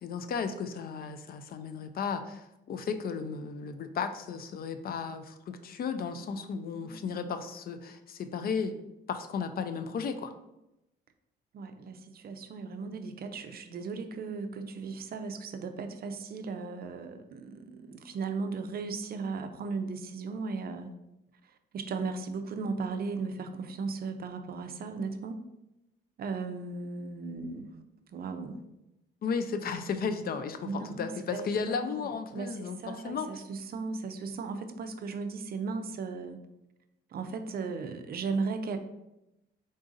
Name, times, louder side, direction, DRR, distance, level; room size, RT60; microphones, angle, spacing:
voice 1, 0.0-8.8 9.1-10.3 29.2-33.3, left 5 dB, 50° left, 9 dB, 0.4 m, -34 dB
voice 2, 6.8-7.3 11.5-20.9 21.4-25.4 26.2-27.8 28.1-28.6 30.6-36.4 37.1-38.8, right 4 dB, 50° right, 7 dB, 0.4 m, -36 dB
3.8 x 2.5 x 3.8 m, 0.91 s
cardioid pair, 90°, 20 cm